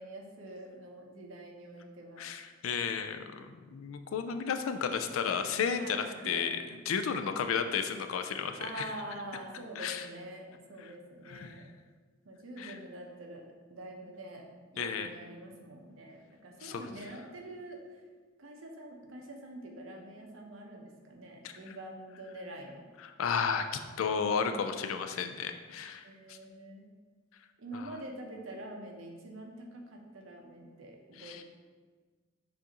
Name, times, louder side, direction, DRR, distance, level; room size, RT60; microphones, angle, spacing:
voice 1, 0.0-2.3 5.8-6.5 8.6-11.7 12.3-13.4 13.7-14.4 14.7-17.8 18.4-22.9 24.9-25.2 26.0-26.9 27.6-31.4, right 1 dB, 80° right, 1 dB, 0.7 m, -45 dB
voice 2, 2.2-8.9 9.8-10.1 10.8-10.9 11.3-11.5 12.6-12.8 14.8-15.1 16.6-17.1 21.4-21.8 23.0-26.4 27.7-28.0 31.1-31.4, left 6 dB, 90° left, 8 dB, 0.4 m, -33 dB
6.8 x 2.5 x 2.9 m, 1.5 s
head